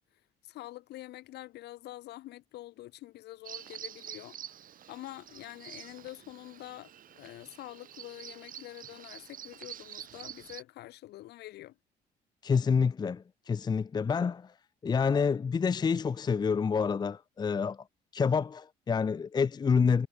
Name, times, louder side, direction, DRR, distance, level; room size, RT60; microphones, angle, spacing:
voice 1, 0.4-4.4 4.9-11.7, left 16 dB, 80° left, 7.8 m, -46 dB
Bird vocalization bird call bird song, 3.4-10.6, right 10 dB, 55° right, 4.6 m, -47 dB
voice 2, 12.4-14.5 14.8-17.8 18.1-20.1, left 5 dB, 25° left, 0.6 m, -28 dB
cardioid pair, 110°, 17 cm